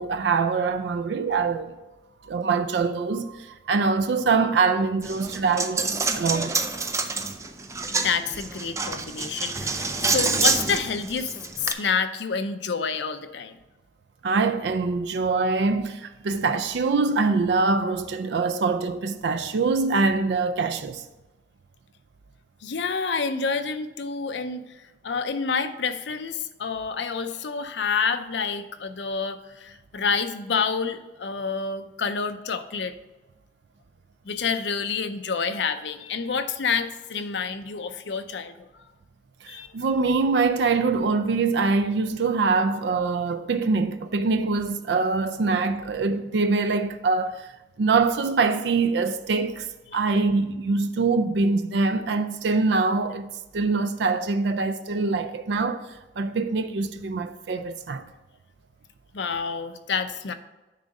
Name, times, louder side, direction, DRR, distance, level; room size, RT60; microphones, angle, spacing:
voice 1, 0.0-1.8 2.2-6.5 14.2-21.0 39.4-47.5 47.8-49.7 49.9-55.8 56.2-58.0, right 4 dB, 70° right, 0.4 m, -24 dB
Coin (dropping), 5.0-11.7, right 4 dB, 15° right, 0.5 m, -27 dB
voice 2, 8.0-11.3 11.6-13.5 22.6-24.6 25.0-32.9 34.3-38.5 39.5-39.7 59.1-60.3, left 5 dB, 80° left, 0.6 m, -28 dB
9.5 x 3.9 x 5.3 m
head